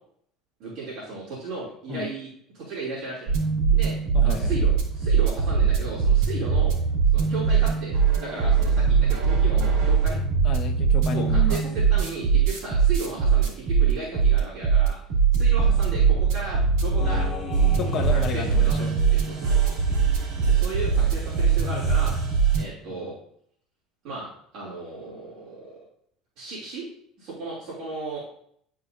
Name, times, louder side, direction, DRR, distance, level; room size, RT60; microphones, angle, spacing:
voice 1, 0.6-3.4 3.7-3.9 4.2-6.7 7.1-10.2 11.1-15.0 15.3-17.3 17.8-19.7 20.0-22.2 22.5-23.2 24.0-25.8 26.4-26.8 27.2-28.2, right 3 dB, 55° right, -8 dB, 2.9 m, -35 dB
sound 1, 3.3-22.6, right 6 dB, 90° right, 2.6 m, -21 dB
voice 2, 4.1-4.5 10.4-11.6 17.0-18.9 22.9-23.1, left 6 dB, 35° left, 3 dB, 0.9 m, -32 dB
sound 2, 17.0-22.3, left 3 dB, 20° left, 1.5 m, -39 dB
10.5 x 4.8 x 2.7 m, 0.66 s
cardioid pair, 155°, 0 cm